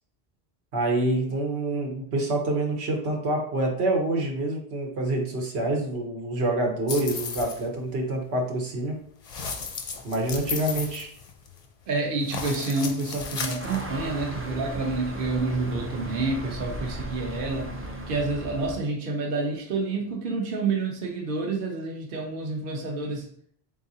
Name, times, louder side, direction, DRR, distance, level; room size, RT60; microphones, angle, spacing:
voice 1, 0.7-9.0 10.0-11.1, right 2 dB, 85° right, 1 dB, 1.2 m, -27 dB
sound 1, 6.9-7.6 9.2-11.7 12.2-13.8, left 5 dB, 50° left, 0.5 m, -34 dB
voice 2, 11.9-17.7 18.1-23.3, right 3 dB, 60° right, 0 dB, 0.9 m, -28 dB
sound 2, 13.6-18.8, right 1 dB, 20° right, 0.4 m, -36 dB
3.9 x 3.6 x 2.7 m, 0.62 s
omnidirectional pair, 1.1 m